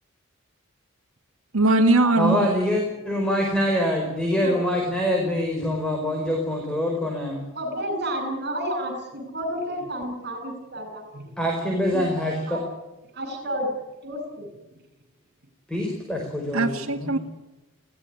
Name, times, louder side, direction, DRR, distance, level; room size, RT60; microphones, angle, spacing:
voice 1, 1.5-2.5 16.5-17.2, right 2 dB, 85° right, 0 dB, 2.0 m, -20 dB
voice 2, 2.2-7.4 11.4-12.6 15.7-17.2, left 1 dB, 5° left, 0 dB, 4.9 m, -25 dB
voice 3, 7.6-11.3 11.9-12.0 12.5-12.7 13.1-13.7 14.0-14.5, equal, 50° right, 6 dB, 5.8 m, -31 dB
21.0 x 16.5 x 9.9 m, 1.1 s
head